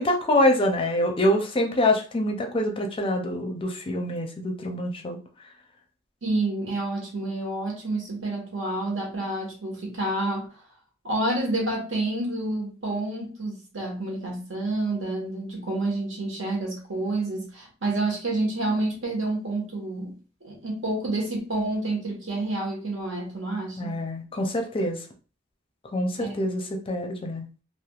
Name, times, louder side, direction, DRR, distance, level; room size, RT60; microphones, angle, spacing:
voice 1, 0.0-5.2 23.8-25.0 25.9-27.5, left 1 dB, 30° left, 0.5 m, -25 dB
voice 2, 6.2-10.6 11.0-24.0 26.2-26.3, right 2 dB, 75° right, 1.3 m, -29 dB
3.3 x 2.6 x 2.4 m
head